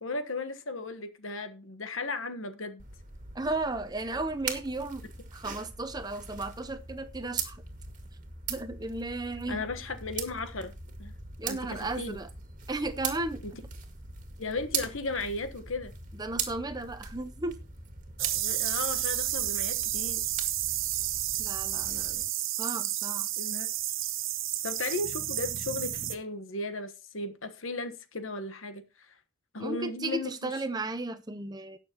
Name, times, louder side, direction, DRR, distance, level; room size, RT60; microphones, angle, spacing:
voice 1, 0.0-2.8 9.5-10.7 11.0-11.1 11.4-12.2 13.4-13.5 14.4-15.9 18.3-20.3 23.4-23.7 24.6-29.1 29.5-30.5, left 3 dB, 75° left, 1.3 m, -36 dB
sound 1, 2.8-22.2, right 6 dB, 40° right, 2.0 m, -40 dB
voice 2, 3.3-5.0 5.3-7.6 8.5-9.6 11.4-12.3 12.7-13.4 16.1-17.6 21.4-22.2 22.6-23.3 29.6-31.8, right 2 dB, 20° right, 0.7 m, -34 dB
sound 2, 18.2-26.2, right 13 dB, 75° right, 1.3 m, -31 dB
18.5 x 6.7 x 3.0 m
head